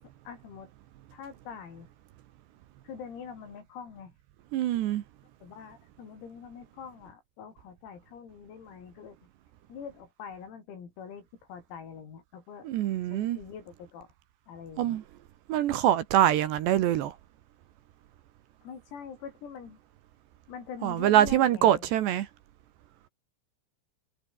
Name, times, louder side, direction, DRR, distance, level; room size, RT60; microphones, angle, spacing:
voice 1, 0.3-0.7 1.1-1.9 2.8-4.1 5.4-9.2 9.7-12.7 13.1-14.1 14.5-15.0 18.6-19.8 20.5-21.9, left 7 dB, 90° left, 8.3 m, -44 dB
voice 2, 4.5-5.0 12.6-13.4 14.8-15.0 15.5-17.1 20.8-22.3, right 12 dB, 70° right, 3.1 m, -24 dB
omnidirectional pair, 6.0 m